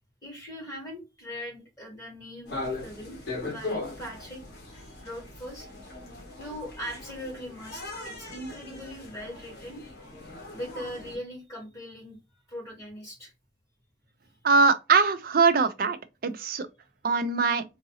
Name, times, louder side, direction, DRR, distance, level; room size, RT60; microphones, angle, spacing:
voice 1, 0.2-4.4 4.7-5.7 6.4-9.9 10.5-12.2 12.5-13.3, equal, 20° left, 2.2 m, -40 dB
sound 1, 2.5-11.2, left 2 dB, 55° left, 1.3 m, -39 dB
voice 2, 14.4-16.0 16.2-16.7 17.0-17.6, right 4 dB, 45° right, 0.5 m, -22 dB
3.9 x 2.5 x 2.7 m
head